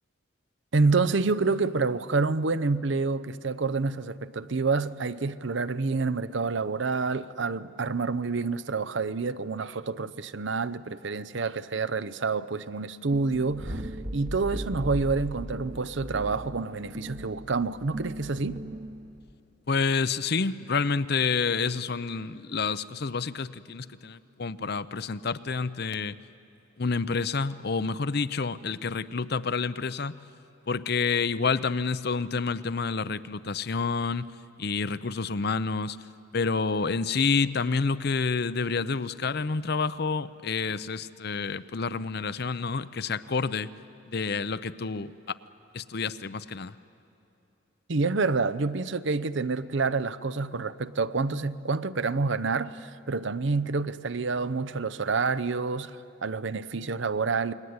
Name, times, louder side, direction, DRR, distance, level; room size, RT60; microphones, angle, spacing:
voice 1, 0.7-18.6 47.9-57.5, right 4 dB, 60° right, 0.7 m, -28 dB
sound 1, 13.1-19.3, right 1 dB, 40° right, 1.2 m, -37 dB
voice 2, 19.7-26.2 26.8-30.2 30.7-34.3 34.6-36.0 36.3-43.7 44.1-45.4 45.7-46.7, left 4 dB, 50° left, 0.6 m, -28 dB
28.5 x 21.5 x 9.6 m
head